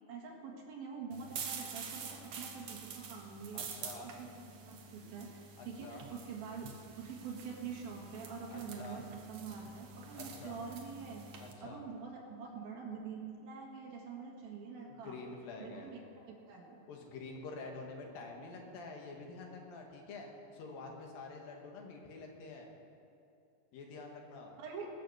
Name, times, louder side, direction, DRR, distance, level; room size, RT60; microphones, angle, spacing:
voice 1, 0.1-3.6 4.0-6.7 6.9-11.2 11.6-15.2 15.6-16.8 24.6-24.9, right 5 dB, 85° right, -2 dB, 3.5 m, -46 dB
sound 1, 1.1-11.5, right 5 dB, 65° right, 1.5 m, -47 dB
voice 2, 3.5-4.1 5.6-6.0 8.5-9.0 10.1-10.6 11.4-11.8 14.9-15.9 16.9-20.3 20.5-22.7 23.7-24.5, left 3 dB, 80° left, 1 dB, 3.3 m, -47 dB
21.0 x 6.9 x 6.7 m, 2.6 s
omnidirectional pair, 4.2 m